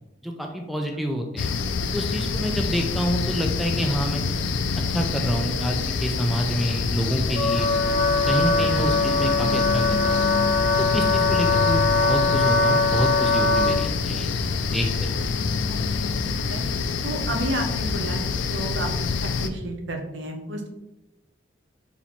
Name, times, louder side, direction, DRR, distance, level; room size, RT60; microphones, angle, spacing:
voice 1, 0.2-1.5 1.9-4.2 4.9-7.7 8.3-10.2 10.8-14.3 14.7-15.1, equal, ahead, 2 dB, 0.4 m, -27 dB
sound 1, 1.4-19.5, left 5 dB, 70° left, 0.4 m, -26 dB
Wind instrument woodwind instrument, 7.3-13.9, left 3 dB, 50° left, 1.0 m, -22 dB
voice 2, 17.0-18.2 18.5-18.9 19.2-20.7, right 1 dB, 75° right, 3 dB, 0.8 m, -31 dB
4.1 x 2.9 x 4.2 m, 0.93 s
head